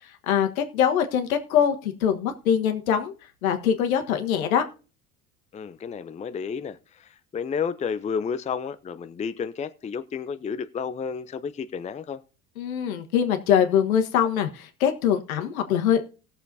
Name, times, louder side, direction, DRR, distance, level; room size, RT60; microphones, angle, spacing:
voice 1, 0.3-3.1 3.4-4.6 12.6-16.0, left 8 dB, 75° left, 1.5 m, -23 dB
voice 2, 5.5-12.2, left 6 dB, 15° left, 0.6 m, -31 dB
19.5 x 7.1 x 2.7 m
figure-of-eight pair, 65°, 43 cm